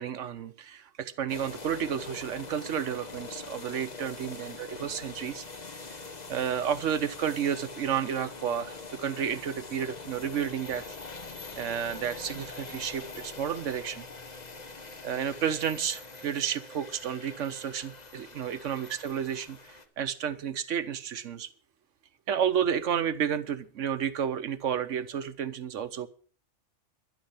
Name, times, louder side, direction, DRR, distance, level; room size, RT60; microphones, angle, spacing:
voice 1, 0.0-5.8 6.3-10.8 11.6-14.1 15.0-21.5 22.3-26.1, right 8 dB, 80° right, 1.2 m, -31 dB
sound 1, 1.3-19.8, left 3 dB, 35° left, 1.2 m, -44 dB
12.0 x 11.0 x 5.7 m
omnidirectional pair, 1.3 m